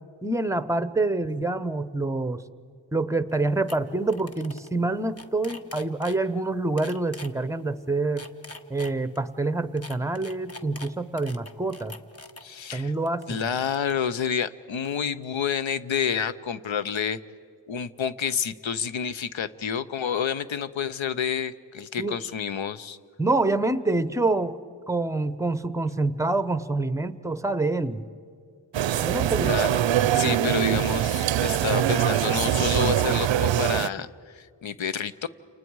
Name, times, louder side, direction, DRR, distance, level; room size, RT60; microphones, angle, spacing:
voice 1, 0.2-2.4 2.9-8.2 8.7-11.9 12.7-13.5 22.0-22.2 23.2-24.6 24.9-28.0 29.0-29.5 30.4-30.5, right 2 dB, 5° right, 13 dB, 0.7 m, -26 dB
sound 1, 3.3-3.4 3.7-3.8 4.1-4.7 5.0-6.2 6.8-7.3 8.0-9.2 9.8-12.4 13.1-13.9, left 2 dB, 30° left, 1.1 m, -43 dB
voice 2, 12.4-12.9 13.3-17.2 17.7-23.0 29.0-29.1 29.4-29.8 30.1-35.3, left 7 dB, 85° left, 14 dB, 0.8 m, -29 dB
sound 2, 28.7-33.9, right 11 dB, 75° right, 0.5 m, -23 dB
29.5 x 28.5 x 4.7 m, 2.3 s
wide cardioid pair, 95°, 45 cm